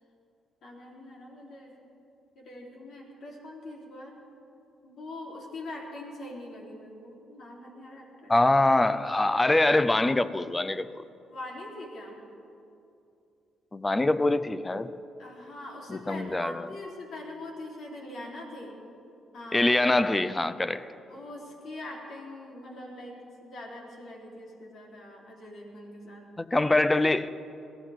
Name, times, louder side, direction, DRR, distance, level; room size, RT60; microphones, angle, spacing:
voice 1, 0.6-1.8 2.4-4.2 4.8-8.3 11.3-12.2 15.2-18.8 19.3-19.7 21.1-26.2, left 1 dB, 65° left, 3.8 m, -42 dB
voice 2, 8.3-11.0 13.7-14.9 15.9-16.7 19.5-20.9 26.4-27.3, left 2 dB, 15° left, 0.6 m, -24 dB
23.0 x 15.5 x 3.7 m
cardioid pair, 90°, 0 cm